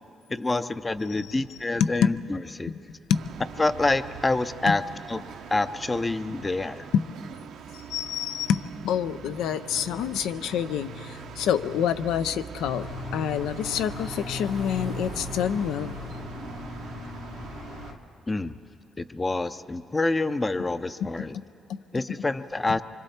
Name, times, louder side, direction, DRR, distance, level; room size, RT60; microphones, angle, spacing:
voice 1, 0.3-2.7 3.6-4.8 5.1-5.2 5.5-6.9 18.3-18.6 19.0-21.4 21.9-22.8, left 2 dB, 20° left, 12 dB, 0.5 m, -27 dB
voice 2, 1.8-2.1 2.7-2.8 3.1-3.3 4.7-4.8 6.9-7.1 7.7-16.0 21.0-21.8 22.1-22.2, left 8 dB, 85° left, 12 dB, 0.5 m, -27 dB
sound 1, 3.1-17.9, right 6 dB, 85° right, 1.0 m, -43 dB
sound 2, 12.6-18.0, left 2 dB, 65° left, 1.4 m, -37 dB
25.5 x 24.5 x 4.3 m, 2.8 s
cardioid pair, 90°, 0 cm